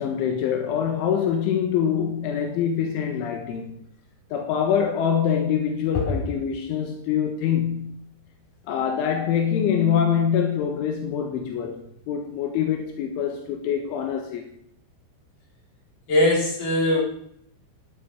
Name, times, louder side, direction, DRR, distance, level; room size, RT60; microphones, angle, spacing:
voice 1, 0.0-3.8 4.3-8.0 8.7-14.4, left 8 dB, 80° left, 3.7 m, -24 dB
voice 2, 16.1-17.0, left 1 dB, 40° left, 6.2 m, -20 dB
16.5 x 12.0 x 5.2 m
omnidirectional pair, 5.5 m